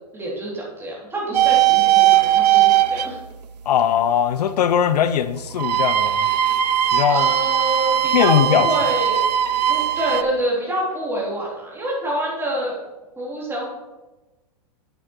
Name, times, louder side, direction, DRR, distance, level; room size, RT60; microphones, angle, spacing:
voice 1, 0.1-3.2 7.1-9.2 9.7-12.7 13.2-13.7, right 1 dB, 10° right, 3.1 m, -26 dB
sound 1, 1.3-3.1 5.5-10.2, right 12 dB, 85° right, 0.6 m, -18 dB
voice 2, 3.7-6.3 6.9-7.3 8.1-8.7, left 9 dB, 80° left, 0.6 m, -19 dB
8.0 x 7.8 x 4.4 m
hypercardioid pair, 120°, 20 cm